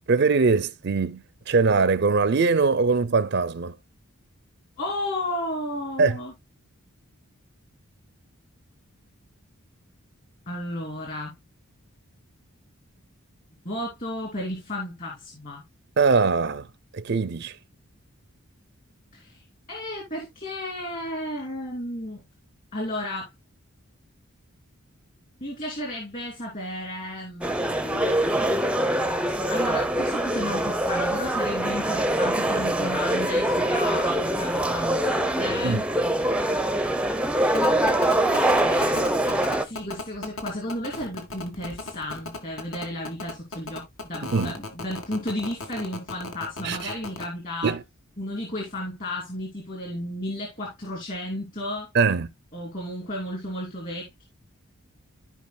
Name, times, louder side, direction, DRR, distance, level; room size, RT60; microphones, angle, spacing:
voice 1, 0.1-3.7 6.0-6.2 16.0-16.7 16.9-17.6 35.6-35.8 44.3-44.5 46.6-46.9 47.6-47.8 51.9-52.3, right 4 dB, 50° right, 0.5 m, -22 dB
voice 2, 4.8-6.3 10.5-11.3 13.6-15.6 19.1-22.2 22.7-23.3 25.4-27.6 29.5-35.9 38.6-47.7 48.2-51.9 52.5-54.3, left 1 dB, 40° left, 2.6 m, -33 dB
sound 1, 27.4-39.6, right 1 dB, 5° right, 0.6 m, -24 dB
sound 2, 37.5-47.2, left 3 dB, 70° left, 1.8 m, -35 dB
14.5 x 4.9 x 2.2 m
head